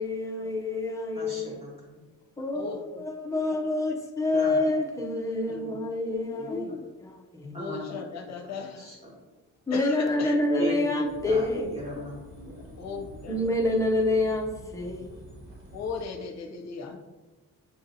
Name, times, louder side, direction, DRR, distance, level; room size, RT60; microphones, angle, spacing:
voice 1, 0.0-1.6 2.4-7.6 9.7-11.7 13.3-15.2, left 2 dB, 10° left, 0 dB, 0.5 m, -27 dB
voice 2, 1.1-1.9 4.3-4.7 5.4-5.8 6.3-6.5 7.5-8.0 8.2-9.1 10.5-10.9 11.3-13.0, equal, 20° right, -5 dB, 1.4 m, -38 dB
voice 3, 2.5-3.0 3.5-3.6 5.5-5.6 6.5-6.8 7.6-8.9 9.7-10.4 11.6-11.7 12.8-13.4 15.7-17.0, left 5 dB, 55° left, 4 dB, 0.6 m, -36 dB
sound 1, 11.0-16.1, right 1 dB, 80° right, 1.4 m, -47 dB
6.8 x 2.7 x 2.6 m, 1.2 s
wide cardioid pair, 165°, 32 cm